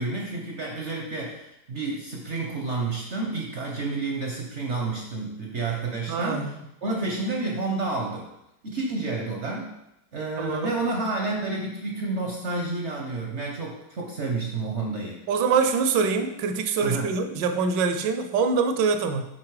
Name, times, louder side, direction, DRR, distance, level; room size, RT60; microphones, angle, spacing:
voice 1, 0.0-6.5 6.8-8.3 8.6-9.7 10.1-15.2 16.8-17.2, right 3 dB, 55° right, -1 dB, 0.8 m, -30 dB
voice 2, 6.1-6.5 10.4-10.7 15.3-19.3, right 5 dB, 70° right, 8 dB, 1.2 m, -24 dB
7.5 x 4.0 x 4.7 m, 0.86 s
omnidirectional pair, 2.3 m